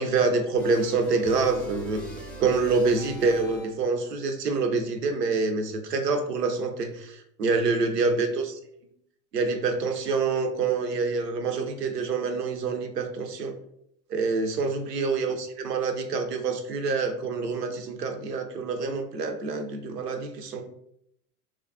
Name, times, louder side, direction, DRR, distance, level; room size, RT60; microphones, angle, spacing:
voice 1, 0.0-2.0 2.4-8.5 9.3-13.5 14.1-20.6, right 4 dB, 85° right, 6 dB, 0.6 m, -26 dB
sound 1, 0.6-4.0, equal, 5° left, 0.4 m, -41 dB
3.0 x 2.3 x 2.4 m, 0.73 s
figure-of-eight pair, 85°, 47 cm